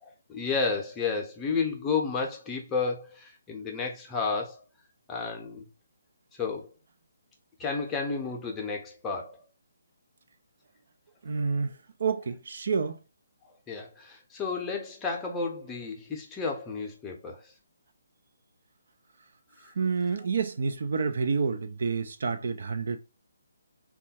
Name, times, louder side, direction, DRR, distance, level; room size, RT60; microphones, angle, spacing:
voice 1, 0.0-4.6 5.1-5.7 6.4-6.7 7.6-9.4 13.4-17.5 19.6-19.7, left 4 dB, 10° left, 0.6 m, -32 dB
voice 2, 11.2-13.0 19.8-23.0, right 5 dB, 50° right, 0.4 m, -29 dB
3.4 x 2.3 x 2.8 m
figure-of-eight pair, 140°, 0 cm